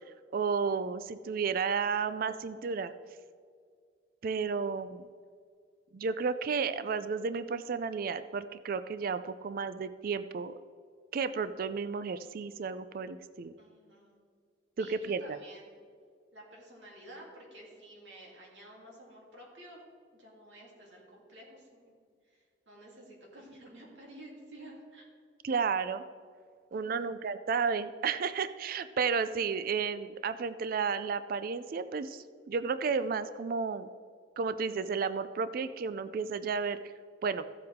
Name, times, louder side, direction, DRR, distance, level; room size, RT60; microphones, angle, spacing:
voice 1, 0.3-2.9 4.2-5.1 5.9-10.5 11.1-13.5 14.8-15.4 25.4-26.0 26.7-33.9 34.4-36.8 37.2-37.4, right 5 dB, 55° right, 13 dB, 0.4 m, -32 dB
voice 2, 13.6-14.2 14.8-15.7 16.3-19.8 20.1-22.0 22.3-25.0 26.7-27.1, right 1 dB, 85° right, -2 dB, 3.0 m, -52 dB
14.5 x 7.7 x 3.6 m, 2.1 s
head